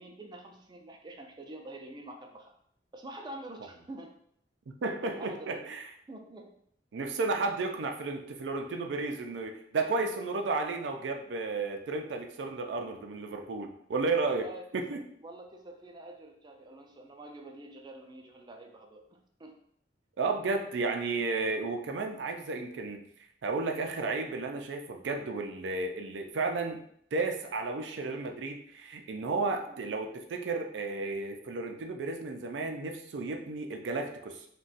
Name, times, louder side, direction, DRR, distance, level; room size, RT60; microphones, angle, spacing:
voice 1, 0.0-2.5 2.9-4.1 5.0-5.5 6.1-6.5 14.2-14.6 14.9-19.1 19.4-19.5 29.7-29.8, right 1 dB, 25° right, 3 dB, 0.4 m, -46 dB
voice 2, 4.8-5.9 6.9-14.5 14.7-15.0 20.2-23.1 23.4-26.8 27.1-34.5, right 3 dB, 85° right, 4 dB, 0.4 m, -33 dB
2.4 x 2.2 x 3.9 m, 0.68 s
head